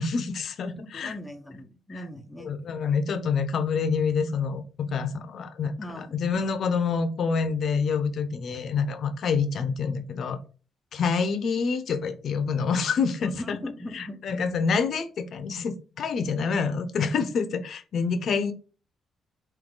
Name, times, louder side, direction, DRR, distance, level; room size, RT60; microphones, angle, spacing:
voice 1, 0.0-1.2 1.9-2.0 2.4-10.4 10.9-13.6 13.9-18.5, left 5 dB, 60° left, 9 dB, 0.7 m, -27 dB
voice 2, 0.8-2.5 5.8-6.3 13.2-14.4, left 1 dB, 10° left, 4 dB, 0.7 m, -39 dB
3.9 x 2.6 x 3.8 m, 0.36 s
cardioid pair, 90°, 0 cm